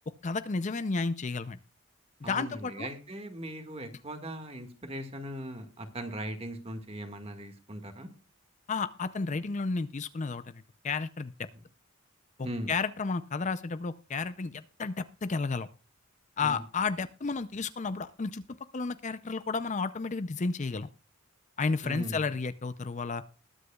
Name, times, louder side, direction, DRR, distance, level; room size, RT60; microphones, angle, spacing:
voice 1, 0.2-1.6 2.2-2.9 8.7-10.5 10.8-11.3 12.4-15.7 16.4-18.4 18.7-20.9 21.6-23.2, left 4 dB, 35° left, 12 dB, 0.5 m, -32 dB
voice 2, 2.2-8.1 11.5-11.6 12.4-12.7 16.4-16.6 21.8-22.2, right 1 dB, 25° right, 6 dB, 1.8 m, -39 dB
20.5 x 8.1 x 2.3 m, 0.36 s
head